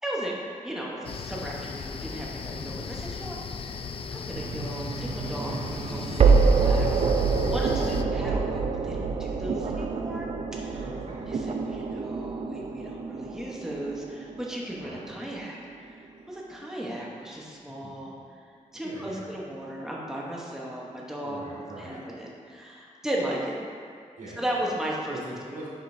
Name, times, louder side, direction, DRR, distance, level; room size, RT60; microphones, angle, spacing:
voice 1, 0.0-0.3 0.6-3.4 4.1-10.8 11.3-18.1 18.7-21.4 21.8-23.6 24.4-25.2, right 1 dB, 5° right, -4 dB, 0.9 m, -36 dB
sound 1, 1.0-8.0, left 5 dB, 45° left, 0.3 m, -37 dB
voice 2, 2.6-2.9 5.3-5.8 7.9-8.0 10.7-11.3 14.8-15.2 16.1-16.2 17.6-18.1 18.8-19.4 21.2-22.0 24.2-24.5 25.1-25.7, right 1 dB, 75° right, -6 dB, 1.7 m, -43 dB
sound 2, 4.4-15.4, right 4 dB, 50° right, 0.4 m, -26 dB
10.5 x 5.1 x 2.6 m, 2.1 s
wide cardioid pair, 120°, 13 cm